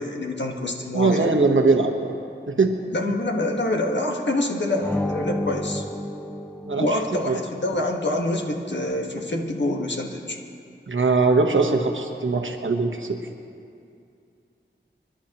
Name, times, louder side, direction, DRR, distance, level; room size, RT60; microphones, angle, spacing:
voice 1, 0.0-1.3 2.9-5.8 6.8-10.4, left 1 dB, 65° left, 1 dB, 1.5 m, -26 dB
voice 2, 0.9-2.1 2.6-2.7 3.0-3.1 6.7-7.0 7.3-7.4 10.9-13.2, right 3 dB, 85° right, 3 dB, 1.2 m, -21 dB
sound 1, 4.8-7.5, left 1 dB, 10° left, 0.5 m, -30 dB
26.5 x 11.5 x 3.0 m, 2.5 s
wide cardioid pair, 65°, 20 cm